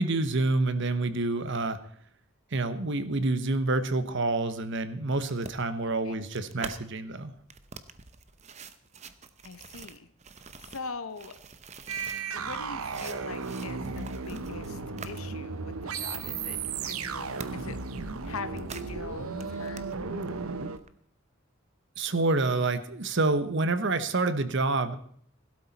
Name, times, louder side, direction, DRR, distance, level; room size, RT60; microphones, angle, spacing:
voice 1, 0.0-1.8 2.5-7.3 22.0-25.0, right 2 dB, 60° right, 12 dB, 1.0 m, -27 dB
sound 1, 5.3-6.8 7.4-12.3 12.6-15.2 15.6-15.7 16.0-17.8 18.1-18.9 19.2-20.0 20.8-20.9, right 5 dB, 35° right, 0.8 m, -46 dB
voice 2, 9.4-10.1 10.5-11.4 12.3-14.8 15.0-19.9, left 4 dB, 85° left, 11 dB, 1.0 m, -42 dB
sound 2, 11.9-20.8, right 4 dB, 85° right, 0.9 m, -35 dB
16.5 x 12.0 x 4.1 m, 0.62 s
head